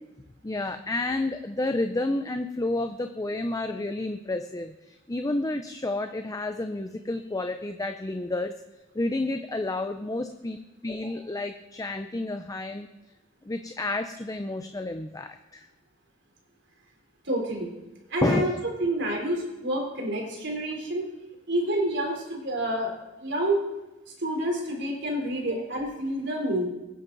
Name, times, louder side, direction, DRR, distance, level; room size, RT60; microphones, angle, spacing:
voice 1, 0.4-8.5 8.9-10.6 10.8-12.9 13.4-15.7 18.2-18.6, left 2 dB, 20° left, 7 dB, 0.5 m, -30 dB
voice 2, 17.2-17.7 18.1-18.5 18.8-21.1 21.5-22.9 23.2-23.6 24.2-26.7, right 1 dB, 65° right, 1 dB, 3.7 m, -28 dB
21.5 x 10.0 x 4.0 m, 1.1 s
head